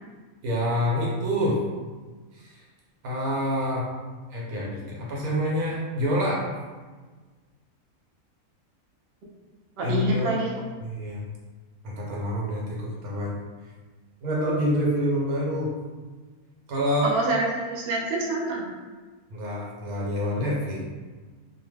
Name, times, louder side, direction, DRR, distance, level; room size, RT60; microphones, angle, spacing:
voice 1, 0.4-1.6 2.3-2.6 3.0-3.9 4.3-6.5 9.8-10.3 10.8-11.2 11.8-13.3 13.6-13.7 14.2-15.7 16.7-17.2 19.3-20.9, equal, 85° right, -4 dB, 1.3 m, -27 dB
voice 2, 9.8-10.5 17.1-18.6, right 2 dB, 60° right, -3 dB, 0.7 m, -26 dB
2.9 x 2.1 x 3.2 m, 1.4 s
omnidirectional pair, 1.5 m